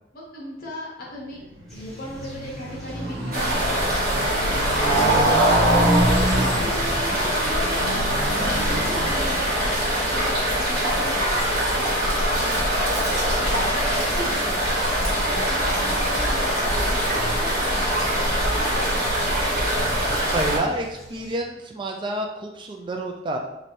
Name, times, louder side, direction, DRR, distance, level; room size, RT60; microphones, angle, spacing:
voice 1, 0.1-1.4 1.7-5.5 6.0-14.6 15.1-17.9 18.5-19.3, left 1 dB, 50° left, -4 dB, 1.2 m, -37 dB
Motorcycle, 1.6-9.7, right 1 dB, 85° right, 1.2 m, -25 dB
sound 1, 1.7-21.4, equal, ahead, 1.1 m, -41 dB
sound 2, 3.3-20.6, equal, 55° right, 1.4 m, -23 dB
voice 2, 19.8-23.4, right 1 dB, 25° right, 2 dB, 0.3 m, -29 dB
3.1 x 2.6 x 4.3 m, 0.90 s
head